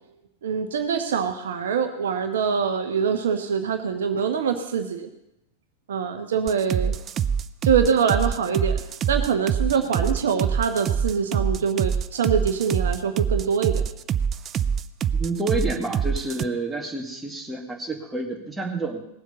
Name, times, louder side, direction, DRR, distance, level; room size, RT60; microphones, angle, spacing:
voice 1, 0.4-5.1 5.9-6.9 7.6-8.8 9.1-13.9, right 6 dB, 60° right, 7 dB, 1.2 m, -24 dB
sound 1, 6.5-16.4, right 7 dB, 30° right, 0.5 m, -25 dB
voice 2, 15.1-19.0, right 2 dB, 5° right, 0 dB, 2.4 m, -29 dB
18.5 x 7.6 x 7.0 m, 0.86 s
figure-of-eight pair, 90°, 0 cm